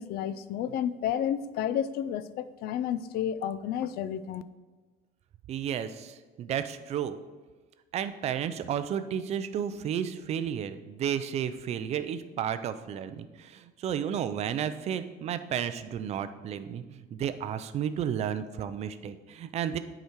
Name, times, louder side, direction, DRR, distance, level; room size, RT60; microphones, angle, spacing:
voice 1, 0.0-4.4, left 9 dB, 50° left, 14 dB, 0.4 m, -31 dB
voice 2, 5.5-7.2 7.9-19.8, right 9 dB, 35° right, 11 dB, 0.4 m, -32 dB
8.1 x 4.9 x 4.5 m, 1.3 s
cardioid pair, 165°, 20 cm